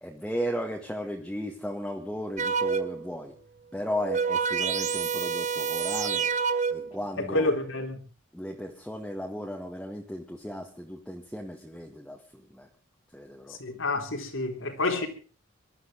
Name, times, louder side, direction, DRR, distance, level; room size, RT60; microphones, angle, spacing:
voice 1, 0.0-3.3 3.7-6.3 6.7-7.5 8.3-12.7 13.1-13.6, equal, 5° left, 1.9 m, -35 dB
sound 1, 2.4-3.1 3.8-7.0 7.7-7.9, right 6 dB, 35° right, 1.1 m, -28 dB
voice 2, 7.2-8.0 13.6-15.1, left 2 dB, 70° left, 3.8 m, -28 dB
23.5 x 13.0 x 3.8 m
head